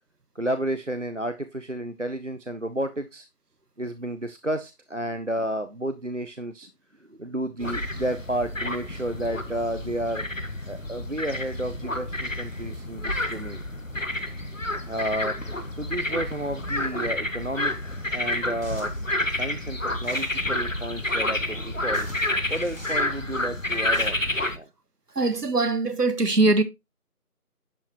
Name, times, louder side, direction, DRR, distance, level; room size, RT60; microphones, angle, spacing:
voice 1, 0.4-3.3 3.8-6.7 7.0-10.3 10.7-13.6 14.9-18.9 19.3-22.1 22.5-24.2 24.5-24.7, right 1 dB, 50° right, 0.6 m, -31 dB
sound 1, 7.6-24.6, left 1 dB, 55° left, 1.2 m, -29 dB
sound 2, 18.6-19.1 20.0-20.5 21.5-21.6 21.9-23.1 23.7-24.1, equal, 35° left, 3.1 m, -47 dB
voice 2, 25.2-26.6, right 2 dB, 85° right, 1.3 m, -21 dB
10.5 x 6.5 x 3.0 m
figure-of-eight pair, 180°, 46 cm